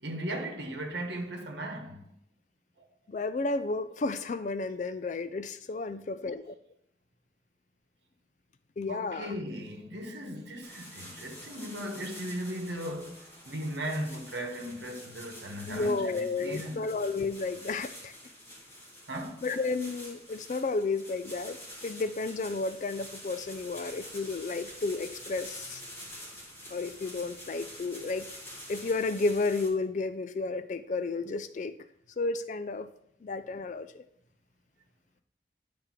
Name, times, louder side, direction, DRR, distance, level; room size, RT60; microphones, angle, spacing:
voice 1, 0.0-2.0 8.9-17.0 19.1-19.4, right 1 dB, 75° right, 1.1 m, -37 dB
voice 2, 3.1-6.5 8.8-9.4 15.7-18.1 19.4-21.6 21.8-25.8 26.7-28.3 28.7-31.8 32.2-32.9 33.2-34.0, left 3 dB, 40° left, 0.3 m, -32 dB
sound 1, 10.6-29.7, equal, 15° left, 1.6 m, -47 dB
9.8 x 3.4 x 5.8 m
head